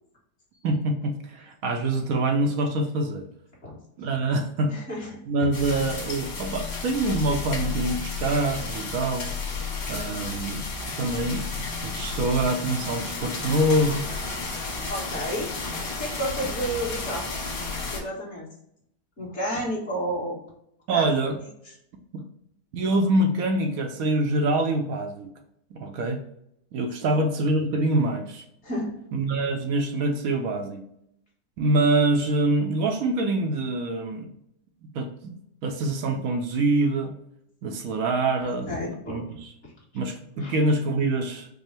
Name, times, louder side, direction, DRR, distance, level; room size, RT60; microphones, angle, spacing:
voice 1, 0.6-3.3 4.0-4.7 5.3-9.3 9.9-10.7 11.0-11.4 11.8-14.0 20.9-21.4 22.7-25.3 25.7-26.2 26.7-28.4 29.1-30.8 31.6-34.3 34.9-35.4 35.6-37.1 37.6-38.7 39.1-39.5 39.9-41.5, right 2 dB, 70° right, 5 dB, 0.9 m, -25 dB
voice 2, 4.7-5.1 14.9-15.5 16.0-17.4 17.9-18.5 19.2-20.4 20.9-21.1 27.1-27.2 28.6-28.9 38.4-39.2 40.4-40.5, equal, 45° left, -5 dB, 1.7 m, -31 dB
sound 1, 5.5-18.0, left 4 dB, 85° left, 1.8 m, -32 dB
5.1 x 2.1 x 3.2 m, 0.75 s
omnidirectional pair, 1.8 m